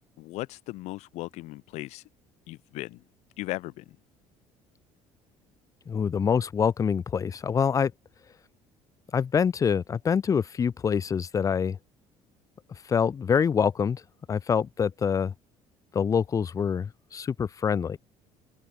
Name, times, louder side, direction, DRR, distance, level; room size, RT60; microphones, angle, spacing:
voice 1, 0.2-2.0 2.5-3.0 3.4-4.0, left 19 dB, 75° left, 0.6 m, -37 dB
voice 2, 5.9-7.9 9.1-11.8 12.9-14.0 14.3-15.3 15.9-18.0, left 7 dB, 30° left, 1.2 m, -25 dB
open air
cardioid pair, 135°, 12 cm